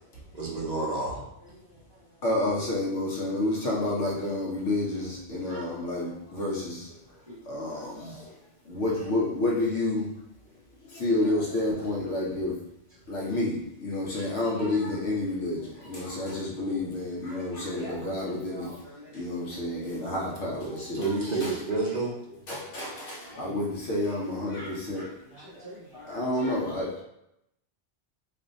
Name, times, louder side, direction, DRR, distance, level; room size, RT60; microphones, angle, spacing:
voice 1, 0.3-1.2 20.9-22.2, right 3 dB, 40° right, -4 dB, 0.9 m, -29 dB
voice 2, 2.2-6.9 7.5-8.3 8.6-10.1 10.9-12.6 13.1-18.7 19.1-21.2 21.4-21.5 22.5-25.5 26.1-27.0, left 2 dB, 85° left, -4 dB, 1.3 m, -29 dB
voice 3, 11.2-11.9 17.5-19.1 19.6-20.0 22.3-22.4 22.7-22.9 23.2-23.7 25.4-26.6, equal, 20° right, -10 dB, 1.6 m, -46 dB
4.3 x 2.7 x 2.6 m, 0.81 s
omnidirectional pair, 1.2 m